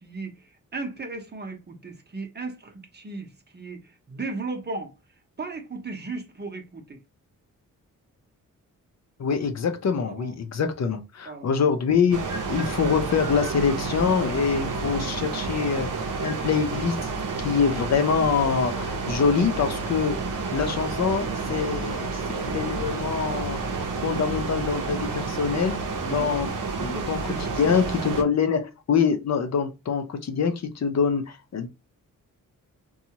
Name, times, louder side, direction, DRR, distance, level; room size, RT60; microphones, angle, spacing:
voice 1, 0.0-4.9 5.4-7.0 9.9-10.3 11.3-11.5 25.9-26.3 26.8-27.6, right 3 dB, 30° right, 0.8 m, -36 dB
voice 2, 9.2-15.9 16.2-17.0 17.4-20.2 20.5-23.6 24.0-25.8 26.0-26.5 26.8-27.2 27.6-31.7, left 6 dB, 50° left, 0.6 m, -25 dB
sound 1, 12.1-28.2, right 4 dB, 65° right, 0.7 m, -30 dB
2.7 x 2.3 x 2.8 m
cardioid pair, 65°, 34 cm